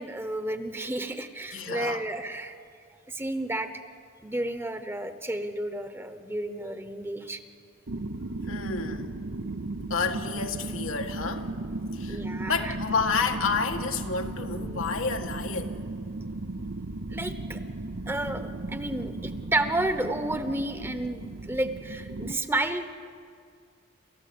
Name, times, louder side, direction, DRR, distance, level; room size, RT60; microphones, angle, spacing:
voice 1, 0.0-2.6 3.1-3.8 4.2-7.4 12.1-12.7 17.1-17.6 18.1-22.8, right 1 dB, 10° right, 9 dB, 1.0 m, -31 dB
voice 2, 1.5-2.0 8.5-9.2 9.9-11.5 11.9-15.8, left 5 dB, 85° left, 4 dB, 1.7 m, -30 dB
sound 1, 7.9-22.3, right 2 dB, 65° right, 0.8 m, -35 dB
28.5 x 13.5 x 8.7 m, 2.3 s
head